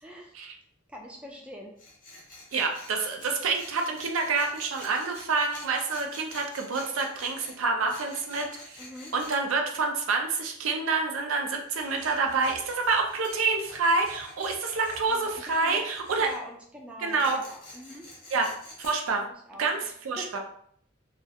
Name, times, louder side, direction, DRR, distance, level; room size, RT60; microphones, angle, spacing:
voice 1, 0.0-0.3 0.9-1.7 8.8-9.1 15.1-15.8 16.2-18.1 19.2-19.9 20.2-20.4, equal, 5° right, 0 dB, 0.3 m, -43 dB
Tools, 1.8-9.4 11.6-16.4 17.2-18.9, left 2 dB, 45° left, 0.7 m, -48 dB
voice 2, 2.5-8.8 9.1-16.3 17.0-17.4 18.3-18.5 18.8-19.2 19.6-20.4, right 4 dB, 75° right, 3 dB, 0.4 m, -27 dB
2.3 x 2.1 x 2.7 m, 0.64 s
head